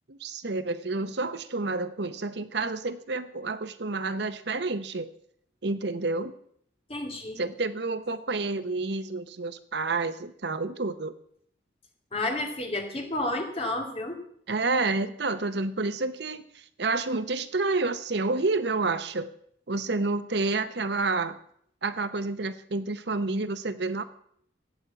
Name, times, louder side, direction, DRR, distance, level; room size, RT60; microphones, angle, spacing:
voice 1, 0.1-5.1 5.6-6.3 7.4-11.1 14.5-19.3 19.7-21.4 21.8-24.0, right 3 dB, 60° right, 12 dB, 0.8 m, -29 dB
voice 2, 6.9-7.4 12.1-14.2, left 2 dB, 30° left, 3 dB, 2.4 m, -31 dB
13.5 x 8.3 x 8.9 m, 0.67 s
head